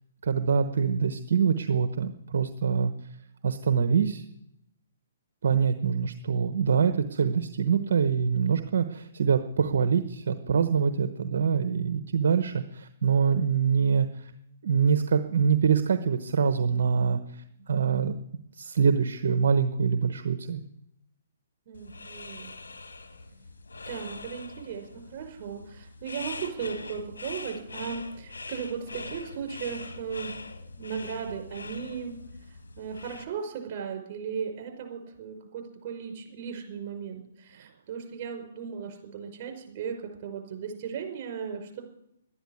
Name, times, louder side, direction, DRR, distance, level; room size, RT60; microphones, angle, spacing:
voice 1, 0.2-2.9 3.4-4.2 5.4-14.3 14.6-18.2 18.5-20.6, right 6 dB, 65° right, 9 dB, 1.0 m, -25 dB
sound 1, 21.7-33.2, left 3 dB, 90° left, 2.0 m, -43 dB
voice 2, 21.7-22.5 23.9-30.3 30.8-32.2 32.5-41.8, right 7 dB, 40° right, 5 dB, 5.2 m, -36 dB
12.5 x 10.5 x 9.6 m, 0.77 s
hypercardioid pair, 140°, 0 cm